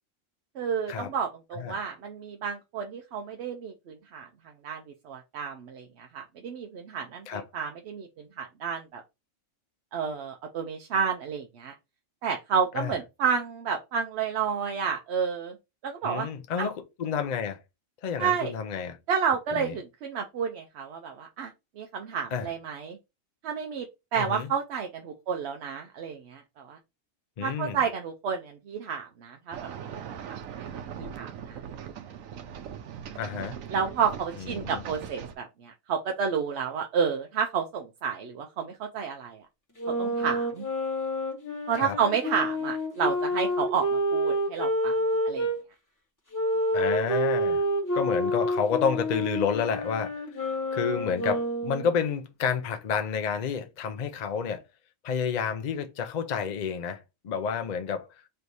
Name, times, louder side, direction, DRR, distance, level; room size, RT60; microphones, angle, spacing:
voice 1, 0.6-4.3 4.6-9.0 9.9-11.7 12.2-15.6 15.8-16.3 16.6-16.7 18.2-18.5 19.1-23.0 23.4-23.9 24.1-26.8 27.4-31.8 33.7-39.4 40.0-40.7 41.7-45.0 45.3-45.5, right 6 dB, 65° right, 0.8 m, -31 dB
voice 2, 16.0-17.6 18.0-19.0 19.5-19.7 22.3-22.5 24.2-24.5 27.4-27.8 33.2-33.5 34.4-34.8 41.7-42.0 46.7-47.6 47.9-50.1 50.7-54.6 55.0-58.1, left 6 dB, 60° left, 0.4 m, -30 dB
sound 1, 29.5-35.3, right 8 dB, 85° right, 1.0 m, -40 dB
sound 2, 39.8-45.6 46.3-51.9, equal, 15° left, 1.1 m, -28 dB
3.3 x 2.7 x 4.6 m
omnidirectional pair, 1.4 m